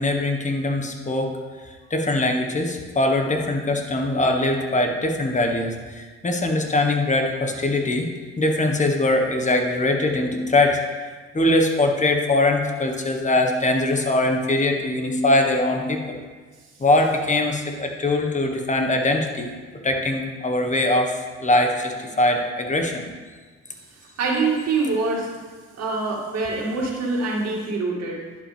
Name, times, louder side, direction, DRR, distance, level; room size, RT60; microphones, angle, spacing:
voice 1, 0.0-1.4 1.6-8.1 8.4-10.8 11.3-16.2 16.8-19.5 19.8-23.1, left 2 dB, 25° left, 3 dB, 1.3 m, -22 dB
voice 2, 24.2-25.3 25.8-28.2, right 3 dB, 60° right, -3 dB, 2.3 m, -24 dB
11.0 x 5.3 x 3.4 m, 1.5 s
supercardioid pair, 70°, 29 cm